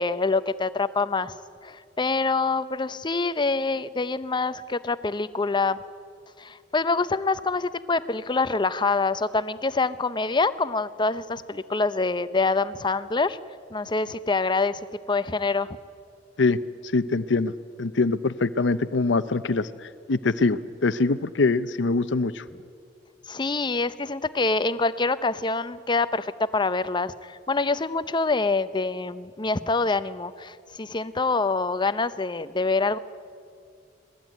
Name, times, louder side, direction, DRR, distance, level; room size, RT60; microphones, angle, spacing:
voice 1, 0.0-1.3 1.6-5.8 6.4-13.4 13.7-15.8 23.3-33.0, left 3 dB, 25° left, 14 dB, 0.7 m, -25 dB
voice 2, 16.8-17.5 17.8-22.4, left 3 dB, 70° left, 12 dB, 0.7 m, -24 dB
26.0 x 18.5 x 9.2 m, 2.3 s
head